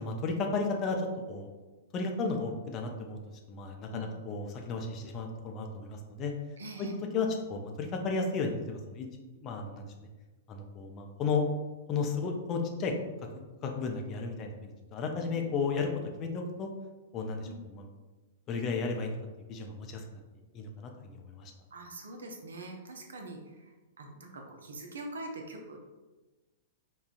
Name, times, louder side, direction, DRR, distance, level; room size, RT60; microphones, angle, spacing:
voice 1, 0.0-1.5 1.9-3.2 3.5-6.3 6.8-6.9 7.1-9.1 9.4-9.9 10.5-11.4 11.9-12.9 13.3-15.9 16.2-16.7 17.1-17.9 18.5-19.2 19.5-20.2 20.5-21.5, left 4 dB, 30° left, 2 dB, 0.5 m, -34 dB
voice 2, 6.6-7.0 15.1-15.5 17.4-17.6 21.7-25.8, right 1 dB, 70° right, 2 dB, 0.5 m, -44 dB
5.0 x 2.3 x 2.4 m, 1.2 s
figure-of-eight pair, 100°, 0 cm